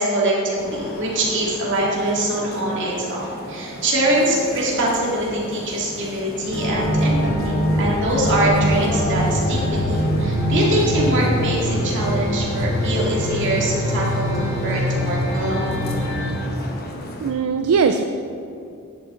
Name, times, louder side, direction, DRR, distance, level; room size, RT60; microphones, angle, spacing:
voice 1, 0.0-7.2 7.4-15.8, right 1 dB, 55° right, -4 dB, 2.2 m, -23 dB
sound 1, 0.5-17.3, left 1 dB, 45° left, 1.1 m, -34 dB
sound 2, 6.5-16.3, equal, 65° left, 2.3 m, -22 dB
voice 2, 17.2-18.0, right 5 dB, 75° right, 7 dB, 0.4 m, -19 dB
10.5 x 7.8 x 3.8 m, 2.5 s
head